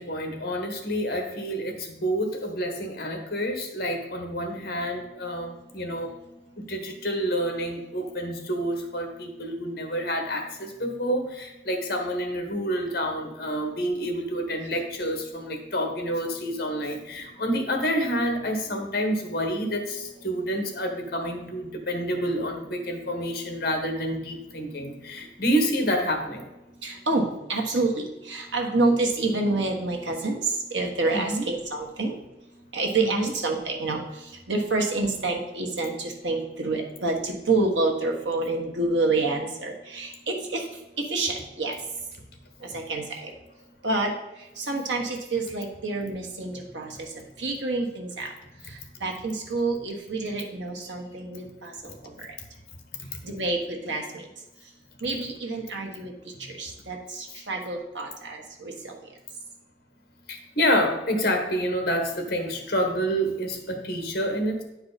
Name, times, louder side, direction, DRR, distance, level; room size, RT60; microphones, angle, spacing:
voice 1, 0.0-6.1 6.6-26.5 28.6-28.7 31.1-31.5 33.0-33.3 60.3-64.6, equal, 55° left, 4 dB, 1.3 m, -28 dB
voice 2, 26.8-30.4 30.7-32.1 32.7-34.0 34.5-40.6 41.1-41.7 42.7-43.3 43.8-44.1 44.6-46.9 47.4-48.3 49.0-51.9 52.2-52.3 53.2-54.2 55.0-56.1 56.5-58.9, right 2 dB, 85° right, 1 dB, 1.4 m, -28 dB
9.6 x 4.8 x 4.1 m, 0.98 s
head